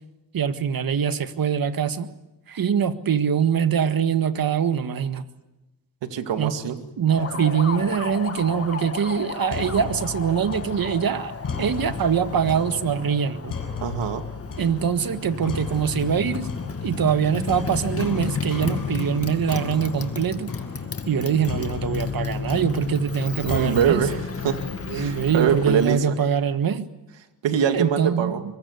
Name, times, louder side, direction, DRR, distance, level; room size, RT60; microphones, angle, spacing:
voice 1, 0.3-2.1 2.5-5.2 6.4-6.6 7.0-11.3 11.6-13.5 14.6-16.5 16.8-20.5 21.1-24.0 24.9-26.9 27.7-28.3, right 7 dB, 55° right, 10 dB, 1.7 m, -23 dB
voice 2, 6.0-6.8 13.8-14.2 23.4-24.2 24.4-24.6 24.9-26.2 27.4-28.4, right 8 dB, 85° right, 7 dB, 2.3 m, -23 dB
Motorcycle, 7.1-26.1, left 5 dB, 35° left, 2.0 m, -33 dB
sound 1, 9.5-24.2, left 5 dB, 50° left, 7.9 m, -35 dB
24.5 x 23.0 x 8.2 m, 1.0 s
cardioid pair, 90°, 42 cm